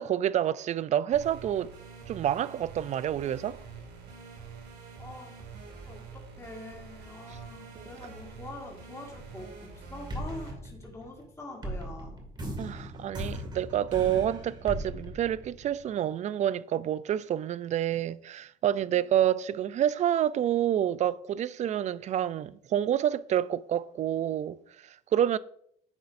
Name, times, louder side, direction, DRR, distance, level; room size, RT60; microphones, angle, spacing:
voice 1, 0.0-1.7 2.1-3.6 7.3-7.4 7.8-7.9 12.6-25.4, right 11 dB, 45° right, 0.4 m, -28 dB
sound 1, 1.1-10.5, right 5 dB, 70° right, 2.3 m, -46 dB
voice 2, 5.0-5.4 5.9-12.2 18.9-19.1, left 2 dB, 15° left, 1.8 m, -45 dB
sound 2, 9.1-9.7 10.1-16.0, equal, 25° right, 2.1 m, -38 dB
10.5 x 6.8 x 2.6 m
cardioid pair, 110°, 17 cm